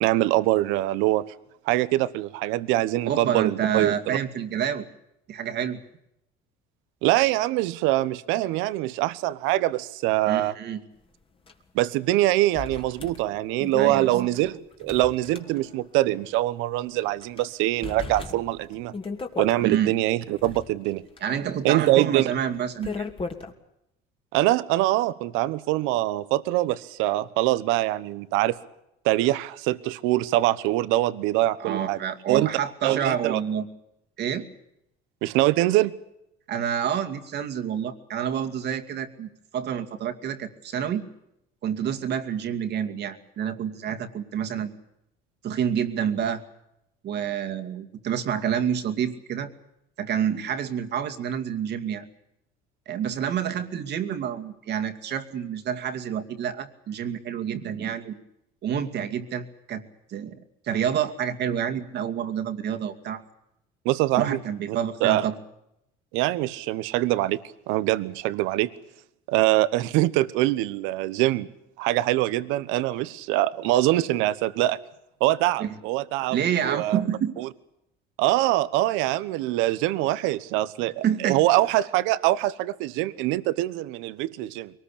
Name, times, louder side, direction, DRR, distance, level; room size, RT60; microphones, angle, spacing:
voice 1, 0.0-1.3 1.7-4.2 7.0-10.5 11.7-18.9 19.4-21.0 21.6-22.3 24.3-28.6 29.0-32.0 32.3-32.5 32.8-33.4 35.2-35.9 63.8-64.4 65.0-65.3 66.1-67.4 67.7-68.7 69.3-71.5 71.8-74.8 75.2-76.4 76.6-77.0 77.4-77.5 78.2-84.7, right 16 dB, 80° right, 16 dB, 1.1 m, -24 dB
voice 2, 3.0-4.9 5.3-5.8 10.3-10.8 13.7-14.3 19.6-19.9 21.2-23.1 31.6-33.7 34.2-34.5 36.5-41.0 41.6-44.7 45.4-46.4 47.0-49.5 50.0-52.1 52.9-58.2 58.6-59.8 60.1-60.4 60.6-63.2 64.2-65.4 75.6-75.7 76.3-77.4 81.0-81.4, right 8 dB, 55° right, 7 dB, 2.5 m, -28 dB
sound 1, 11.5-11.6 11.8-11.9 12.5-15.9 16.3-16.4 17.0-17.4 17.8-19.7 20.2-23.5, left 4 dB, 25° left, 2.8 m, -37 dB
23.0 x 19.5 x 8.5 m, 0.82 s
supercardioid pair, 90°, 20 cm